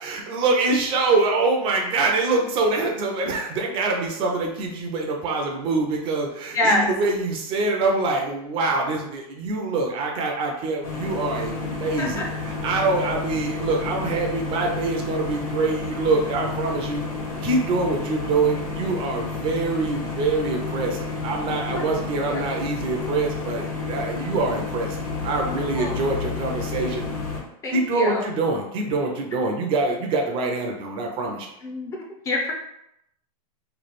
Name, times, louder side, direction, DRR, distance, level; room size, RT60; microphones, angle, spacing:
voice 1, 0.0-17.0 17.4-25.0 25.2-27.0 27.7-31.5, right 3 dB, 30° right, 1 dB, 0.6 m, -25 dB
voice 2, 6.5-6.8 12.0-12.2 21.7-22.4 25.7-25.9 27.6-28.3 31.6-32.0 32.2-32.5, left 1 dB, 15° left, -1 dB, 0.7 m, -26 dB
sound 1, 10.8-27.4, left 4 dB, 75° left, 1.3 m, -31 dB
3.2 x 2.4 x 4.2 m, 0.80 s
supercardioid pair, 150°, 19 cm